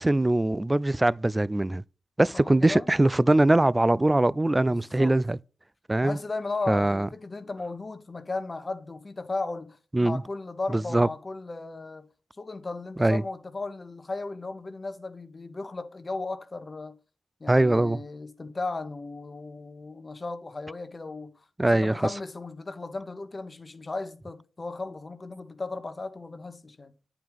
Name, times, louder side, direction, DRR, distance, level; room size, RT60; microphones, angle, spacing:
voice 1, 0.0-1.8 2.2-5.4 5.9-6.2 6.7-7.1 9.9-10.2 10.7-11.1 13.0-13.2 17.5-18.0 21.6-22.0, right 1 dB, 20° right, 0.3 m, -22 dB
voice 2, 2.3-2.9 4.7-5.2 6.0-12.1 12.4-17.0 17.4-21.3 21.6-26.9, left 3 dB, 40° left, 1.1 m, -36 dB
8.9 x 4.8 x 3.5 m
supercardioid pair, 45°, 0 cm